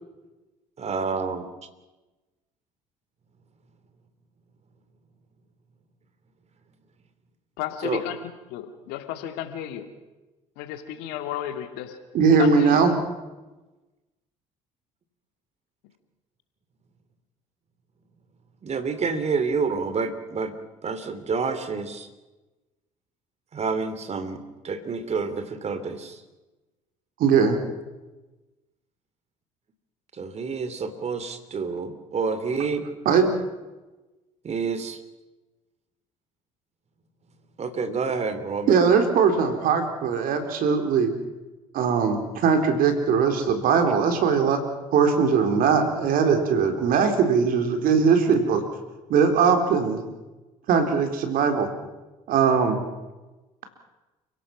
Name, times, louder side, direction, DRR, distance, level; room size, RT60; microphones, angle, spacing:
voice 1, 0.8-1.4 7.8-8.0 18.6-20.5 20.8-22.1 23.5-26.2 30.2-32.8 34.4-35.0 37.6-38.7, right 5 dB, 40° right, 3.1 m, -28 dB
voice 2, 7.6-8.2 8.5-9.9 10.6-12.0 12.3-12.9, left 11 dB, 70° left, 2.3 m, -33 dB
voice 3, 12.1-12.9 27.2-27.6 33.1-33.3 38.7-41.1 41.7-44.6 44.9-48.6 49.1-50.0 50.7-51.7 52.3-52.8, right 6 dB, 60° right, 4.0 m, -20 dB
29.5 x 17.0 x 6.1 m
hypercardioid pair, 60°, 17 cm